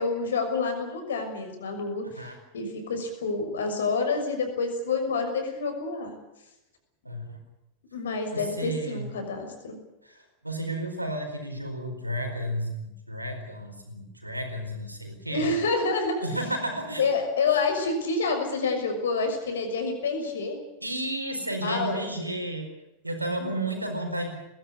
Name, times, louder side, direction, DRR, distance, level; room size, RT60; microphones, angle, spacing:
voice 1, 0.0-6.1 7.9-9.8 15.3-16.2 17.0-20.6 21.6-22.0 23.4-23.6, left 4 dB, 65° left, 5 dB, 6.3 m, -28 dB
voice 2, 7.0-7.4 8.3-9.1 10.0-15.5 16.2-17.1 17.4-17.5 20.8-22.7 23.0-24.4, right 1 dB, 85° right, 4 dB, 4.6 m, -32 dB
21.0 x 17.0 x 9.6 m, 0.91 s
figure-of-eight pair, 90°, 0 cm